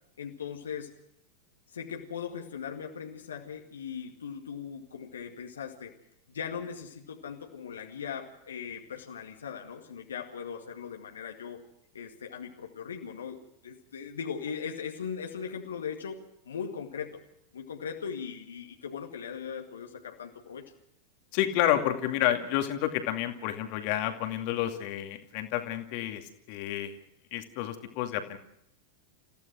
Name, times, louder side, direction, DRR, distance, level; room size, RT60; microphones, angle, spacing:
voice 1, 0.2-0.9 1.7-5.9 6.3-11.6 11.9-17.2 17.5-20.7, left 7 dB, 70° left, 2 dB, 2.1 m, -39 dB
voice 2, 21.3-27.0 27.3-28.4, left 12 dB, 45° left, 6 dB, 2.4 m, -30 dB
29.5 x 15.5 x 6.3 m, 0.78 s
figure-of-eight pair, 90°, 0 cm